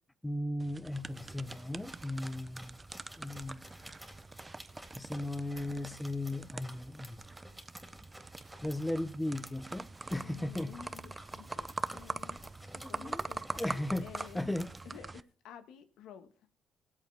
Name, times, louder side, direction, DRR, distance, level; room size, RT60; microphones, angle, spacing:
voice 1, 0.2-2.8 3.2-3.6 4.9-7.2 8.6-10.7 12.7-13.3 13.6-14.1 14.3-14.7, left 1 dB, 10° left, 1.0 m, -36 dB
sound 1, 0.6-15.2, right 3 dB, 25° right, 0.6 m, -44 dB
sound 2, 0.9-15.0, right 1 dB, 5° right, 3.7 m, -53 dB
voice 2, 10.1-12.4 12.7-14.5 14.8-16.3, left 9 dB, 90° left, 1.5 m, -52 dB
18.5 x 8.2 x 3.6 m
cardioid pair, 90°, 0 cm